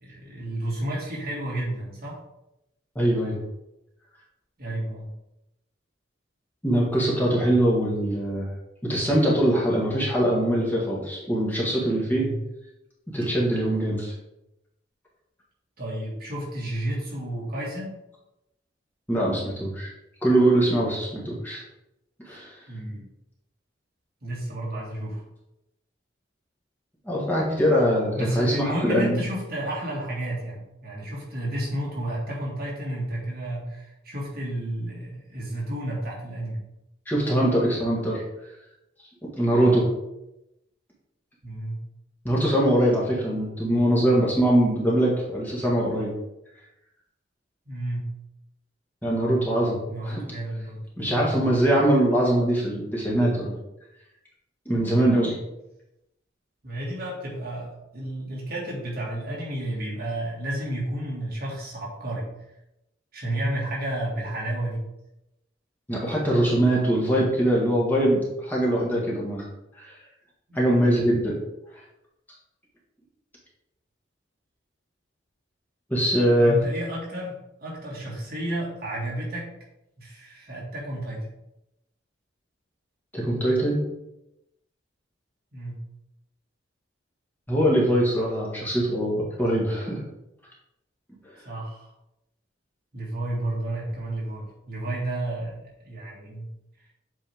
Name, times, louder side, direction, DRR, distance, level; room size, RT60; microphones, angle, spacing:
voice 1, 0.0-2.2 4.6-5.1 12.1-12.4 15.8-18.0 21.2-21.3 22.7-23.1 24.2-25.2 28.2-36.6 39.5-39.9 41.4-41.8 47.7-48.1 49.9-50.8 51.1-51.4 56.6-62.3 63.1-64.8 70.5-70.9 76.4-79.5 80.0-81.3 85.5-85.8 91.5-91.9 92.9-96.5, right 1 dB, 50° right, -4 dB, 1.9 m, -31 dB
voice 2, 2.9-3.4 6.6-8.5 8.8-12.3 13.1-14.1 19.1-19.9 20.2-21.6 22.3-22.5 27.0-28.5 28.8-29.2 37.1-38.2 39.3-39.8 42.2-46.1 49.0-49.8 50.0-50.2 51.0-53.6 54.6-55.4 65.9-69.5 69.8-69.9 70.5-71.3 75.9-76.6 83.1-83.8 87.5-90.0, right 1 dB, 10° left, -5 dB, 1.4 m, -22 dB
7.6 x 4.2 x 3.4 m, 0.88 s
head